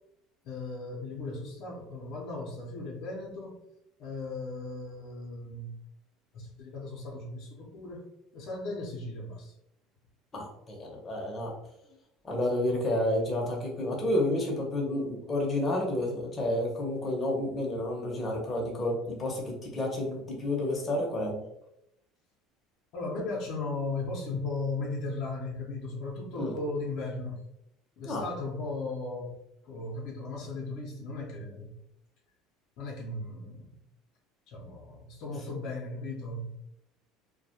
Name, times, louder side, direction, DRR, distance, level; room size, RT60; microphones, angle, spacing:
voice 1, 0.4-3.6 4.0-5.7 6.3-8.0 8.3-9.5 11.8-12.0 22.9-27.4 28.0-29.4 29.6-31.8 32.8-33.8 34.5-36.6, left 3 dB, 65° left, -2 dB, 0.6 m, -36 dB
voice 2, 10.3-11.5 12.2-21.4 26.3-26.5 28.0-28.2, left 1 dB, 25° left, -1 dB, 0.7 m, -30 dB
2.2 x 2.1 x 2.7 m, 0.80 s
supercardioid pair, 105°, 0 cm